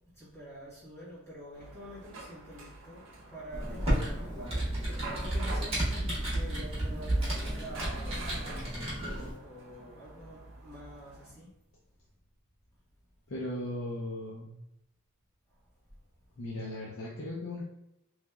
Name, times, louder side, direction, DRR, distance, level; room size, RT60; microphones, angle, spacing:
voice 1, 0.1-11.5 15.5-15.6, equal, 10° left, -8 dB, 1.2 m, -47 dB
sound 1, 1.5-11.3, right 3 dB, 55° right, 0.7 m, -47 dB
Computer keyboard, 3.5-9.3, right 1 dB, 25° right, 1.3 m, -32 dB
voice 2, 13.3-14.5 16.4-17.6, left 1 dB, 65° left, -4 dB, 0.6 m, -37 dB
3.9 x 3.3 x 2.3 m, 0.85 s
head